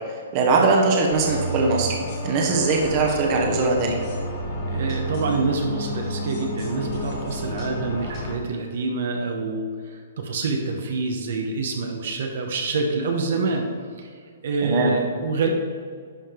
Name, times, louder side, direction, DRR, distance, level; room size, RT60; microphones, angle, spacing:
voice 1, 0.3-2.0 2.2-4.0 14.6-15.0, right 3 dB, 25° right, 0 dB, 1.1 m, -20 dB
sound 1, 1.1-8.3, equal, 25° left, 2.1 m, -31 dB
voice 2, 4.7-13.7 14.0-14.1 14.4-15.5, right 3 dB, 55° right, 2 dB, 1.0 m, -26 dB
11.5 x 5.2 x 3.7 m, 2.1 s
hypercardioid pair, 170°, 0 cm